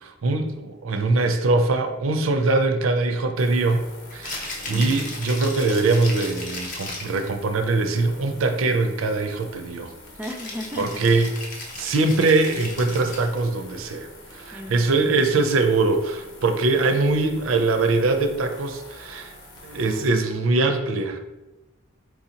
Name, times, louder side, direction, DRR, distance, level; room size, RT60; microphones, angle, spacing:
voice 1, 0.0-9.9 10.8-11.4 11.8-19.3 19.6-21.2, right 3 dB, 70° right, 6 dB, 0.4 m, -22 dB
sound 1, 3.4-20.1, left 1 dB, 65° left, 0.9 m, -45 dB
Rattle (instrument), 4.1-7.3 10.2-13.4, left 2 dB, 40° left, 0.7 m, -36 dB
voice 2, 4.7-5.1 10.2-11.3 14.5-15.6, equal, 10° right, 2 dB, 0.3 m, -36 dB
4.6 x 2.7 x 2.8 m, 1.1 s
head